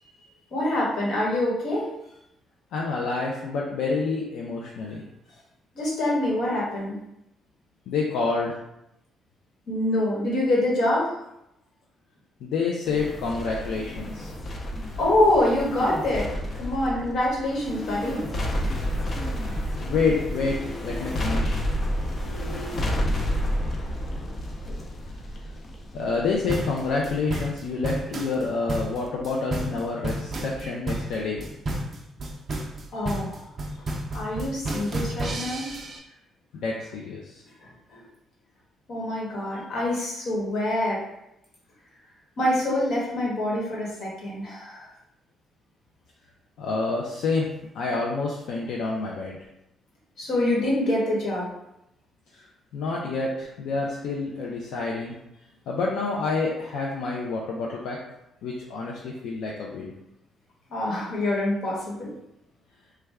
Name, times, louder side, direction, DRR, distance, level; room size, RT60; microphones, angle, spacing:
voice 1, 0.5-1.9 5.7-7.0 9.7-11.2 15.0-18.3 24.7-24.8 32.9-33.4 34.1-35.7 37.6-38.0 38.9-41.0 42.4-44.9 50.2-51.5 60.7-62.2, left 1 dB, 65° left, -4 dB, 1.2 m, -25 dB
voice 2, 2.7-5.0 7.9-8.6 12.4-14.3 17.8-18.0 18.3-21.6 25.9-31.4 36.5-37.4 46.6-47.5 47.7-49.4 52.3-52.5 52.7-55.2 55.7-58.0 58.4-59.9, left 4 dB, 85° left, -2 dB, 0.4 m, -28 dB
sound 1, 12.9-28.3 28.7-28.8, equal, 35° left, 0.5 m, -30 dB
sound 2, 26.5-36.0, right 1 dB, 35° right, 0.5 m, -31 dB
3.2 x 2.2 x 3.4 m, 0.85 s
cardioid pair, 135°, 0 cm